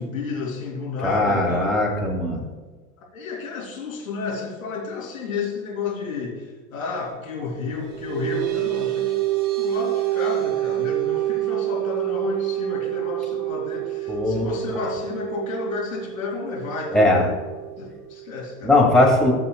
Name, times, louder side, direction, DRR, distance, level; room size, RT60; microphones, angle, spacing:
voice 1, 0.0-1.9 3.1-9.2 9.6-17.5 17.8-19.1, left 4 dB, 65° left, -2 dB, 3.1 m, -31 dB
voice 2, 1.0-2.4 14.1-14.5 16.9-17.3 18.6-19.3, left 1 dB, ahead, -3 dB, 2.3 m, -19 dB
sound 1, 7.6-18.6, right 17 dB, 20° right, 0.3 m, -27 dB
18.0 x 7.0 x 2.3 m, 1.4 s
figure-of-eight pair, 90°, 44 cm